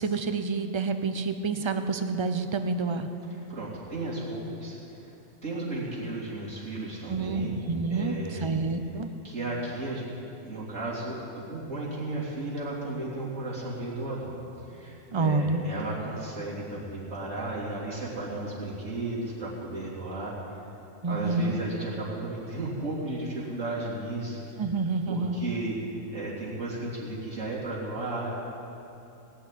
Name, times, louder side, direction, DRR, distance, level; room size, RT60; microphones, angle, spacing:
voice 1, 0.0-3.1 7.1-9.1 15.1-15.6 21.0-21.6 24.6-25.4, right 3 dB, 30° right, 8 dB, 0.6 m, -28 dB
voice 2, 3.5-4.8 5.0-5.1 5.4-7.5 7.9-8.5 9.2-10.0 10.4-11.2 11.5-14.4 14.7-20.3 21.1-24.4 25.1-25.8 26.1-28.3, right 2 dB, 80° right, -6 dB, 3.6 m, -34 dB
18.0 x 6.3 x 10.0 m, 2.8 s
omnidirectional pair, 1.3 m